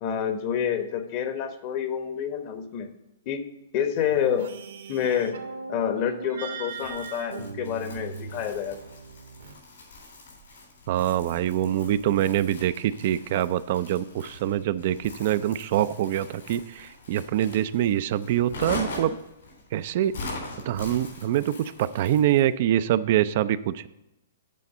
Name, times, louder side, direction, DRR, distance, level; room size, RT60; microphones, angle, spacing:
voice 1, 0.0-2.9 3.3-3.4 3.7-4.5 4.9-5.3 5.7-8.8, left 8 dB, 40° left, 8 dB, 0.9 m, -28 dB
sound 1, 3.9-9.5, right 4 dB, 75° right, 1.2 m, -39 dB
Crumpling crinkling, 6.7-22.5, left 2 dB, 80° left, 3.5 m, -42 dB
voice 2, 10.9-19.2 19.7-20.2 20.7-23.9, right 11 dB, 50° right, 14 dB, 0.3 m, -25 dB
8.4 x 4.2 x 6.6 m, 0.90 s
hypercardioid pair, 130°, 0 cm